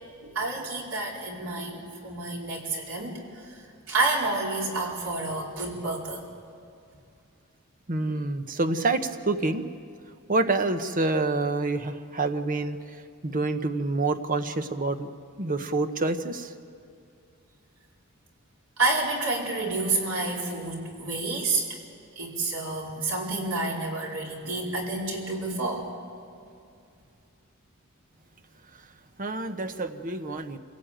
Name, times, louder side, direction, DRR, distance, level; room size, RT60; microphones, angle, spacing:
voice 1, 0.2-6.2 18.8-21.8 22.2-25.9, right 3 dB, 85° right, -2 dB, 4.7 m, -29 dB
voice 2, 7.9-9.7 10.3-15.1 15.4-16.5 29.2-30.6, right 3 dB, 40° right, 8 dB, 1.1 m, -27 dB
27.0 x 17.0 x 9.1 m, 2.4 s
head